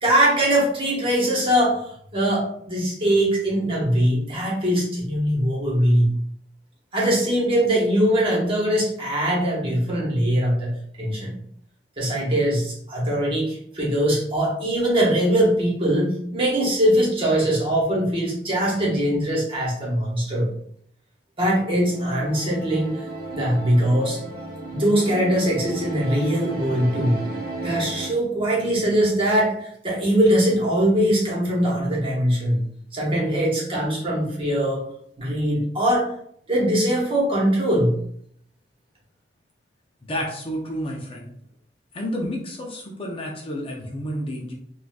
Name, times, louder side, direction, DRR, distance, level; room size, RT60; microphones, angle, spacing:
voice 1, 0.0-1.8 2.1-6.1 6.9-11.3 12.0-20.5 21.4-23.0 23.3-24.2 24.7-27.2 27.6-34.8 35.2-36.1 36.5-38.0, right 1 dB, 30° right, -4 dB, 1.1 m, -21 dB
sound 1, 21.8-28.2, right 2 dB, 60° right, 0.8 m, -34 dB
voice 2, 40.0-41.3 41.9-44.5, equal, 30° left, -1 dB, 0.5 m, -30 dB
3.9 x 2.4 x 2.3 m, 0.66 s
head